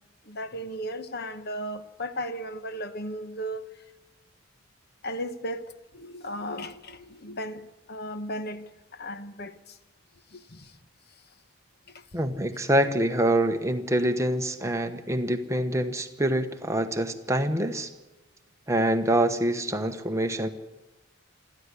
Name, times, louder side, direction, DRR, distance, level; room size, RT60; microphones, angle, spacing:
voice 1, 0.2-3.7 5.0-9.8 10.3-10.8 11.9-12.0, equal, 50° left, 1.0 m, -36 dB
voice 2, 12.1-17.9 18.7-20.5, right 1 dB, 15° right, 1.1 m, -25 dB
28.0 x 11.5 x 9.7 m
head